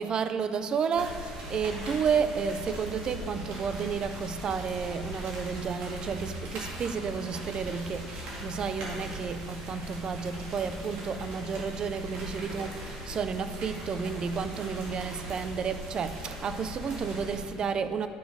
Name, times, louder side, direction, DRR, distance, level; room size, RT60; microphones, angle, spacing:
voice 1, 0.0-18.1, right 6 dB, 40° right, 11 dB, 0.4 m, -31 dB
sound 1, 0.9-17.4, equal, 80° right, 2.1 m, -40 dB
10.0 x 5.0 x 5.1 m, 2.4 s
cardioid pair, 110°, 2 cm